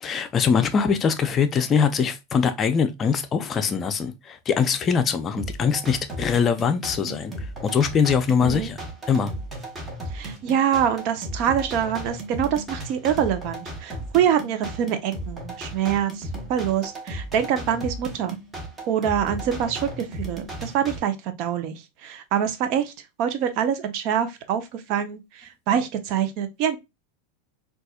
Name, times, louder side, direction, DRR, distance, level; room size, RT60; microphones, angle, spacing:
voice 1, 0.0-7.3 7.6-8.8 9.1-9.3, left 6 dB, 30° left, 0.5 m, -22 dB
sound 1, 5.4-21.0, right 1 dB, 15° right, 1.2 m, -35 dB
voice 2, 8.4-8.7 10.1-18.4 18.9-22.9 23.2-26.8, right 9 dB, 55° right, 0.7 m, -25 dB
4.1 x 2.5 x 2.3 m
supercardioid pair, 120°, 0 cm